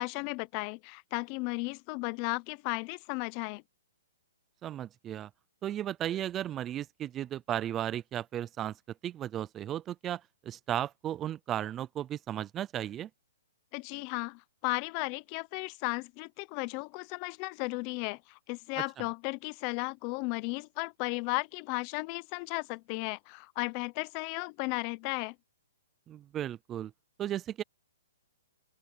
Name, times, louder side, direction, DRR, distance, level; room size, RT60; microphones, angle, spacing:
voice 1, 0.0-3.6 13.7-25.3, left 27 dB, 30° left, 0.7 m, -35 dB
voice 2, 4.6-5.3 5.6-8.8 9.0-10.2 10.5-13.1 26.1-26.9 27.2-27.6, right 11 dB, 15° right, 0.4 m, -35 dB
open air
hypercardioid pair, 160°, 0 cm